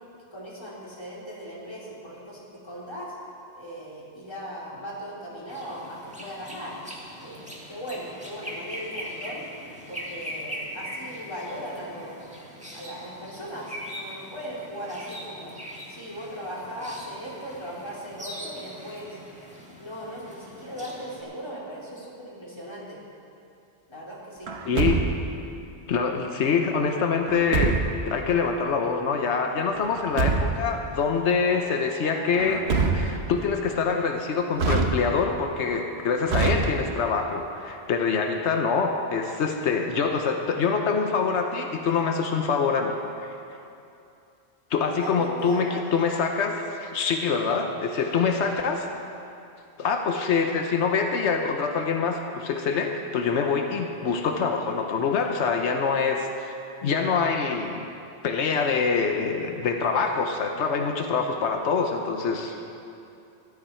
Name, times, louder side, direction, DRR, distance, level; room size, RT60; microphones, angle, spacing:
voice 1, 0.2-3.1 3.6-6.8 7.2-9.5 9.9-12.3 12.7-15.5 15.9-19.2 19.8-23.0 23.9-24.5 44.8-45.9, equal, 25° left, -7 dB, 3.2 m, -38 dB
sound 1, 5.5-21.2, equal, 5° right, 1.5 m, -41 dB
Truck, 24.5-25.4 27.3-28.1 29.8-30.7 32.3-33.4 34.6-35.4 36.3-37.2, right 4 dB, 70° right, 1.1 m, -25 dB
voice 2, 24.7-25.0 25.9-32.6 32.9-43.0 44.7-48.9 49.8-56.5 56.8-57.8 58.2-62.6, left 5 dB, 90° left, 3 dB, 1.1 m, -25 dB
sound 2, 29.7-34.1, right 1 dB, 55° right, 3.9 m, -47 dB
14.5 x 12.0 x 4.4 m, 2.7 s
omnidirectional pair, 1.1 m